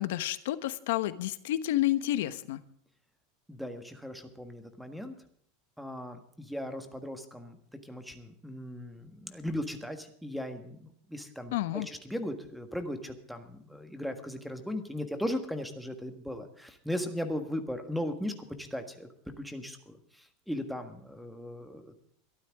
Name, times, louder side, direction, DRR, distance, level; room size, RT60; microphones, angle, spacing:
voice 1, 0.0-2.6 11.5-11.9, left 14 dB, 70° left, 12 dB, 1.1 m, -30 dB
voice 2, 3.5-5.2 5.8-7.6 7.8-18.3 18.6-19.1 19.4-22.0, left 1 dB, ahead, 7 dB, 1.5 m, -37 dB
22.0 x 12.5 x 3.6 m, 0.65 s
supercardioid pair, 170°, 0 cm